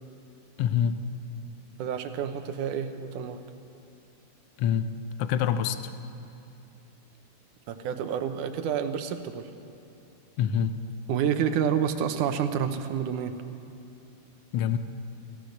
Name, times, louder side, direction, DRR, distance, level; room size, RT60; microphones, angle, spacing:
voice 1, 0.6-1.0 4.6-4.9 5.2-5.9 10.4-10.7 14.5-14.8, left 9 dB, 70° left, 10 dB, 1.5 m, -25 dB
voice 2, 1.8-3.4 7.7-9.5 11.1-13.4, right 8 dB, 85° right, 8 dB, 2.5 m, -29 dB
25.0 x 16.5 x 6.6 m, 2.7 s
omnidirectional pair, 3.5 m